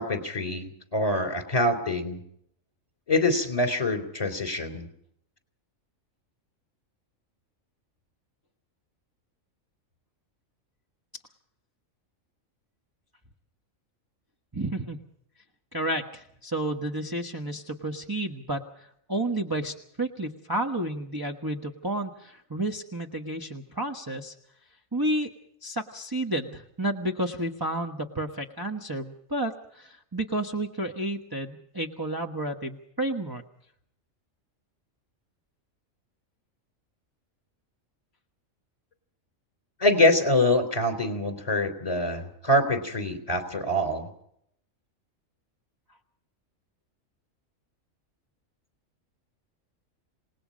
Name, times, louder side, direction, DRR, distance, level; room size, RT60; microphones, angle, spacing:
voice 1, 0.0-2.2 3.1-4.9 39.8-44.1, left 1 dB, 25° left, 7 dB, 3.6 m, -25 dB
voice 2, 14.5-15.0 15.7-24.3 24.9-25.3 25.6-33.4, right 1 dB, 15° right, 1 dB, 1.3 m, -31 dB
28.0 x 19.5 x 5.2 m, 0.71 s
omnidirectional pair, 1.4 m